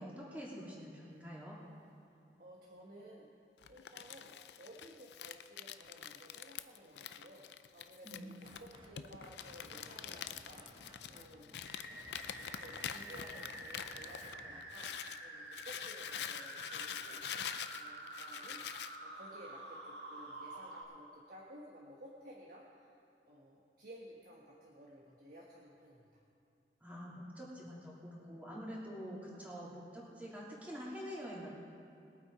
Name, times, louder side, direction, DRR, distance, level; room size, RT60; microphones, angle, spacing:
voice 1, 0.0-1.5 8.0-8.3 26.8-31.6, equal, 10° right, -6 dB, 2.9 m, -46 dB
voice 2, 2.4-3.3 3.7-11.5 12.4-17.2 17.7-23.0 23.3-26.2, equal, 55° right, -3 dB, 1.3 m, -55 dB
Crumpling crinkling, 3.6-15.2 15.5-19.0, left 9 dB, 70° left, 0.4 m, -45 dB
sound 1, 8.4-8.9 9.2-14.6, right 1 dB, 30° right, 1.2 m, -58 dB
sound 2, 11.7-20.8, right 1 dB, 85° right, 1.8 m, -49 dB
21.0 x 8.0 x 4.7 m, 2.6 s
head